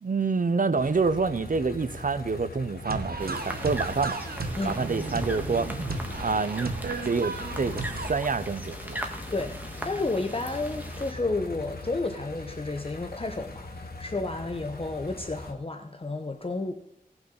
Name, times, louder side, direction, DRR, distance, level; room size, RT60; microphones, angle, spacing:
voice 1, 0.0-4.2 4.6-5.8 6.2-6.7 7.0-9.0, right 4 dB, 60° right, 0.6 m, -27 dB
sound 1, 0.8-15.5, left 2 dB, 85° left, 1.3 m, -41 dB
sound 2, 2.8-8.1, right 3 dB, 80° right, 1.0 m, -34 dB
sound 3, 3.2-11.1, right 1 dB, 10° right, 1.5 m, -40 dB
voice 2, 9.8-16.7, left 2 dB, 35° left, 0.9 m, -31 dB
17.5 x 5.9 x 3.9 m
wide cardioid pair, 50°, 15 cm